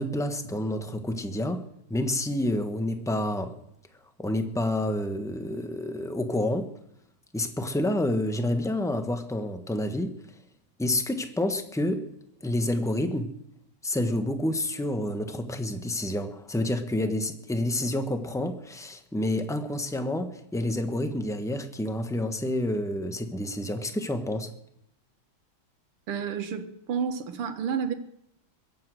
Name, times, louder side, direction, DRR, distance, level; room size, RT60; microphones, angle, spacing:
voice 1, 0.0-1.6 1.9-3.5 4.2-6.7 7.3-10.1 10.8-12.0 12.4-13.3 13.8-24.5, left 1 dB, ahead, 7 dB, 0.8 m, -29 dB
voice 2, 26.1-27.9, right 7 dB, 85° right, 7 dB, 2.3 m, -30 dB
22.0 x 8.8 x 6.4 m, 0.76 s
omnidirectional pair, 2.4 m